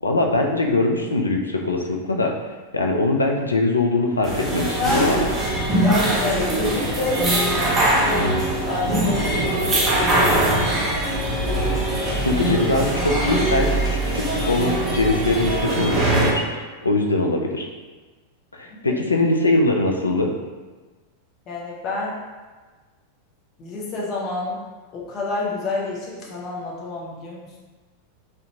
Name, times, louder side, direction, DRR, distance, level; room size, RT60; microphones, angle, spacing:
voice 1, 0.0-2.3 2.7-5.2 12.2-17.7 18.5-20.3, left 2 dB, 80° left, 1 dB, 0.3 m, -22 dB
sound 1, 4.2-16.3, right 1 dB, 20° right, 0.6 m, -22 dB
voice 2, 4.8-5.2 5.8-8.3 8.6-10.1 10.5-10.8 18.7-19.0 21.5-22.2 23.6-24.6 24.9-27.5, left 2 dB, 35° left, -4 dB, 0.6 m, -28 dB
2.5 x 2.1 x 2.7 m, 1.3 s
figure-of-eight pair, 90°, 0 cm